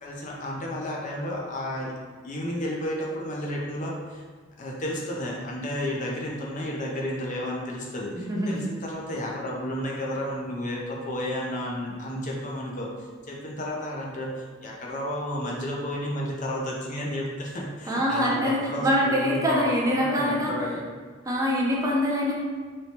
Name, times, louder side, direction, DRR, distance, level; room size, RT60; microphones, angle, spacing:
voice 1, 0.0-1.9 2.2-4.2 4.6-12.9 13.3-20.8, left 1 dB, 40° left, -2 dB, 0.5 m, -32 dB
voice 2, 8.1-8.6 17.9-20.5 21.3-22.3, equal, 15° right, -3 dB, 0.5 m, -24 dB
3.0 x 3.0 x 2.8 m, 1.5 s
head